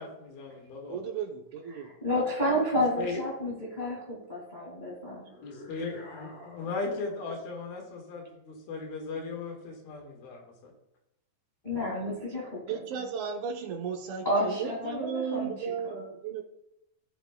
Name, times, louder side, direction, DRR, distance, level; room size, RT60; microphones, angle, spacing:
voice 1, 0.0-1.0 2.7-3.2 5.4-10.7, left 3 dB, 80° left, 1 dB, 3.5 m, -37 dB
voice 2, 0.9-1.9 12.7-16.4, right 7 dB, 70° right, 2 dB, 1.9 m, -35 dB
voice 3, 1.7-5.2 11.6-12.8 14.2-15.5 15.8-15.9, equal, 20° left, -3 dB, 1.2 m, -30 dB
sound 1, 5.3-7.6, left 2 dB, 40° left, 1.9 m, -48 dB
16.5 x 7.0 x 2.2 m, 0.85 s
omnidirectional pair, 4.2 m